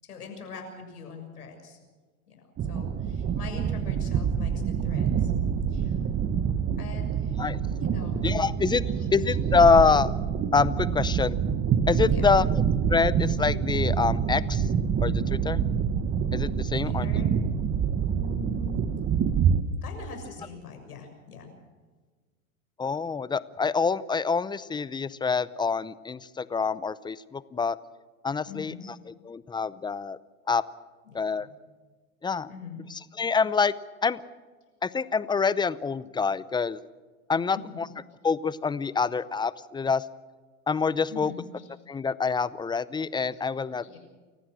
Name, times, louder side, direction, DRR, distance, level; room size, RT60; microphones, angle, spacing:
voice 1, 0.0-1.8 2.3-2.4 2.7-5.3 5.7-5.9 6.8-7.5 7.8-8.3 8.8-9.1 12.1-12.3 16.8-17.4 18.1-18.9 19.3-19.4 19.8-21.5 28.5-28.8 31.0-31.5 32.5-32.8 37.5-37.6 41.1-41.7 43.3-43.4 43.8-44.0, left 5 dB, 90° left, 4 dB, 6.8 m, -43 dB
sound 1, 2.6-19.6, right 7 dB, 30° right, 1.3 m, -26 dB
voice 2, 8.2-8.8 9.1-10.1 10.5-11.4 11.9-12.5 12.9-14.7 15.0-15.6 16.3-17.1 22.8-27.8 28.2-28.7 29.1-30.2 30.5-30.6 31.1-31.5 32.2-32.5 32.9-33.7 34.0-34.2 34.8-36.8 37.3-37.9 38.2-40.0 40.7-41.3 41.9-44.0, left 5 dB, 10° left, 18 dB, 0.6 m, -26 dB
29.0 x 15.5 x 6.3 m, 1.4 s
hypercardioid pair, 105°, 44 cm